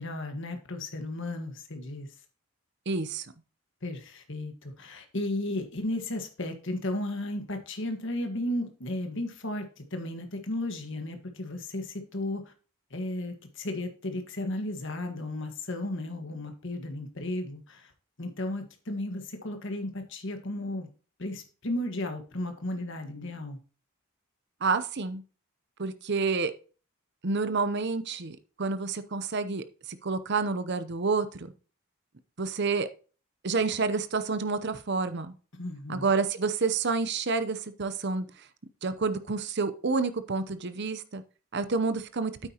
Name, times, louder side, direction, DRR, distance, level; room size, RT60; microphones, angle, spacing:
voice 1, 0.0-2.1 3.8-12.5 12.9-17.9 18.2-20.9 21.2-23.6 35.6-36.1, left 1 dB, 60° left, 1.6 m, -34 dB
voice 2, 2.9-3.3 24.6-25.2 25.8-26.5 27.2-29.6 30.0-31.5 32.4-32.9 33.4-35.3 35.9-38.3 38.8-41.2 41.5-42.3, right 4 dB, 50° right, 0.7 m, -29 dB
9.0 x 8.6 x 2.9 m
head